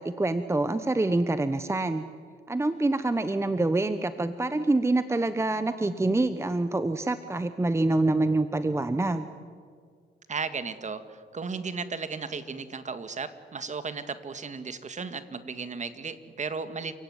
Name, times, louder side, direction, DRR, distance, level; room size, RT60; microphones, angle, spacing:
voice 1, 0.0-2.1 2.5-9.3, right 2 dB, 15° right, 11 dB, 1.0 m, -26 dB
voice 2, 10.3-16.9, right 5 dB, 35° right, 11 dB, 1.9 m, -35 dB
29.0 x 16.5 x 9.7 m, 2.1 s
cardioid pair, 90°, 20 cm